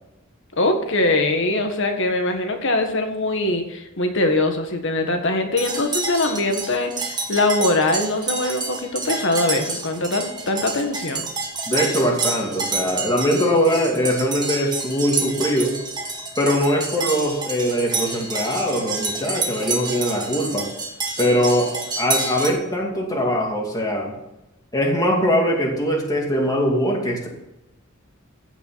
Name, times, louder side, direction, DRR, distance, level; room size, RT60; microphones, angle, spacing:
voice 1, 0.5-11.3, left 2 dB, 60° left, 5 dB, 1.8 m, -22 dB
sound 1, 5.6-22.5, right 3 dB, 20° right, 1.7 m, -28 dB
voice 2, 11.7-15.7 16.4-20.7 21.2-24.1 24.7-27.3, equal, 20° left, -1 dB, 2.5 m, -21 dB
15.5 x 6.0 x 5.8 m, 0.93 s
head